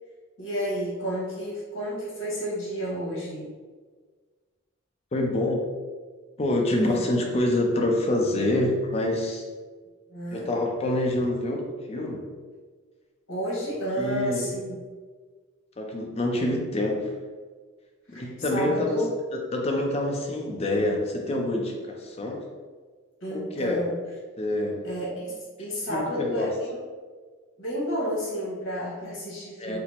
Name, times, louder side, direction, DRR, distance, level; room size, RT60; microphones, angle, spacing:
voice 1, 0.4-3.4 6.8-7.0 10.1-10.5 13.3-14.8 18.1-19.1 23.2-23.9 24.8-26.8 27.6-29.8, equal, 80° left, -6 dB, 1.4 m, -31 dB
voice 2, 5.1-5.6 6.4-9.4 10.3-12.2 14.0-14.6 15.8-17.1 18.1-19.0 19.3-22.4 23.3-23.9 24.4-24.9 25.9-26.5 29.6-29.8, left 1 dB, 30° left, 1 dB, 0.4 m, -26 dB
4.2 x 2.0 x 2.8 m, 1.5 s
head